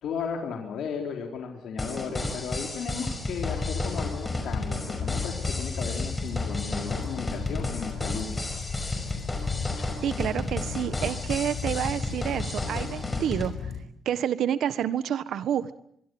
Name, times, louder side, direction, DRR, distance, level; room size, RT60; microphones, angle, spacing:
voice 1, 0.0-8.7, left 6 dB, 75° left, 2 dB, 3.9 m, -35 dB
sound 1, 1.8-13.5, left 2 dB, 15° left, 5.4 m, -33 dB
sound 2, 3.4-13.8, left 6 dB, 55° left, 4.6 m, -35 dB
voice 2, 10.0-13.7 14.0-15.8, right 9 dB, 75° right, 13 dB, 1.4 m, -29 dB
24.5 x 23.0 x 7.9 m, 0.70 s
cardioid pair, 130°, 0 cm